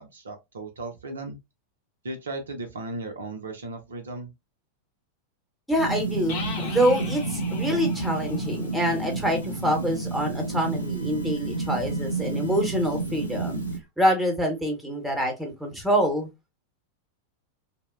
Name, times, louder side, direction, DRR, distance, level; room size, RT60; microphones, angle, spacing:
voice 1, 0.0-1.4 2.0-4.3, right 2 dB, 70° right, 0.5 m, -36 dB
voice 2, 5.7-13.6 14.0-16.3, equal, ahead, 0.9 m, -26 dB
sound 1, 5.8-13.8, right 2 dB, 90° left, 0.5 m, -30 dB
sound 2, 6.3-9.9, left 4 dB, 45° left, 0.8 m, -40 dB
2.7 x 2.0 x 2.4 m
figure-of-eight pair, 90°, 0 cm